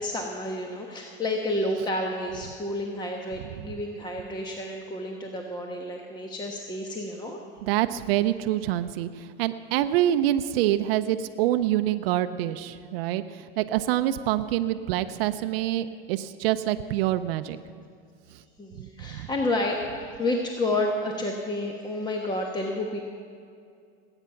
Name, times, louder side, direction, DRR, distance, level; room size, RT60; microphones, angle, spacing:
voice 1, 0.0-7.4 18.6-23.0, left 1 dB, 15° left, 1 dB, 1.2 m, -30 dB
voice 2, 7.6-17.6 18.8-19.3, right 13 dB, 75° right, 9 dB, 0.7 m, -26 dB
20.0 x 9.0 x 5.8 m, 2.3 s
supercardioid pair, 115°, 29 cm